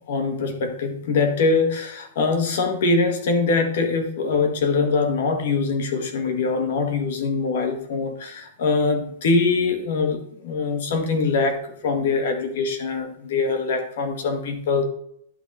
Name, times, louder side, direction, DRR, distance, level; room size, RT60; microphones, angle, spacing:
voice 1, 0.1-14.8, left 4 dB, 55° left, 5 dB, 1.7 m, -23 dB
11.5 x 4.0 x 4.2 m, 0.69 s
supercardioid pair, 175°, 0 cm